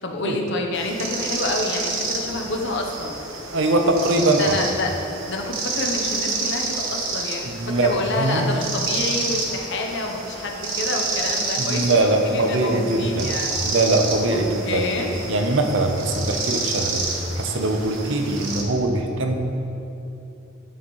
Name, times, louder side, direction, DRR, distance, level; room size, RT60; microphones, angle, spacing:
voice 1, 0.0-3.2 4.4-4.9 5.3-13.5 14.3-15.1, left 2 dB, 60° left, 2 dB, 0.9 m, -28 dB
sound 1, 0.7-18.6, right 3 dB, 90° right, 1.2 m, -29 dB
voice 2, 3.5-4.5 7.4-8.5 11.6-13.3 13.6-14.8 15.3-19.3, right 2 dB, 65° right, 4 dB, 0.7 m, -22 dB
11.0 x 6.5 x 3.1 m, 2.8 s
head